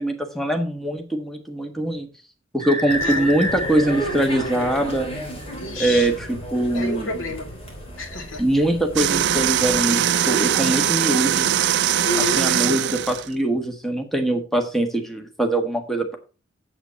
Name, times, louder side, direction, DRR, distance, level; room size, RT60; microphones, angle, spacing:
voice 1, 0.0-2.1 2.5-5.1 5.8-7.1 8.4-11.5 12.4-16.2, right 1 dB, ahead, 3 dB, 1.4 m, -23 dB
sound 1, 2.6-5.4, equal, 35° right, 1.5 m, -29 dB
sound 2, 2.9-9.8, equal, 30° left, 3.1 m, -34 dB
voice 2, 3.0-3.3 5.5-6.1 6.7-7.5 8.0-8.4 12.1-12.4, left 2 dB, 80° left, 5 dB, 2.1 m, -29 dB
sound 3, 9.0-13.3, right 10 dB, 60° right, 0.4 m, -21 dB
8.1 x 7.9 x 4.2 m, 0.34 s
head